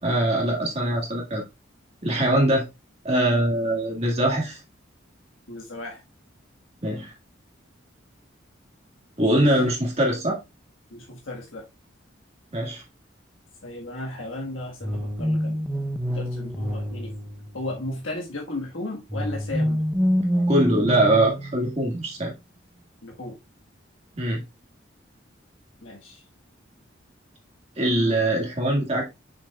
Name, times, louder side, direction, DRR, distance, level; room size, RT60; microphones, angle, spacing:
voice 1, 0.0-1.4 2.0-2.7 3.0-4.6 6.8-7.1 9.2-10.4 12.5-12.8 20.3-22.3 24.2-24.4 27.8-29.0, right 1 dB, 30° right, 1.8 m, -22 dB
voice 2, 5.5-6.0 9.3-9.6 10.9-11.6 13.6-15.6 16.1-17.1 17.5-19.9 23.0-23.4 25.8-26.2, left 2 dB, 85° left, 1.5 m, -35 dB
sound 1, 14.8-17.9 19.1-22.0, equal, 10° right, 0.6 m, -27 dB
6.8 x 6.2 x 2.3 m
head